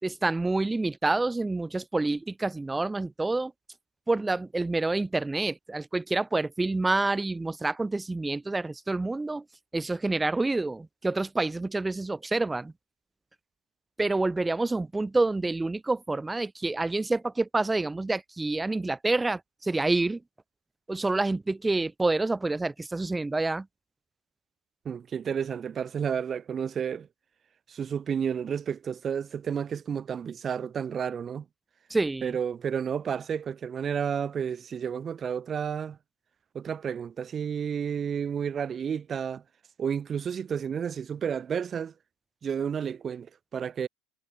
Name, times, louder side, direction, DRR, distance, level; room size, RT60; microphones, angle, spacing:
voice 1, 0.0-3.5 4.1-9.4 9.7-12.7 14.0-20.2 20.9-23.7 31.9-32.4, right 2 dB, 10° right, 4.0 m, -28 dB
voice 2, 24.8-27.1 27.7-31.4 32.2-36.0 36.5-39.4 39.8-41.9 42.4-43.9, right 7 dB, 30° right, 8.0 m, -31 dB
supercardioid pair, 105°, 0 cm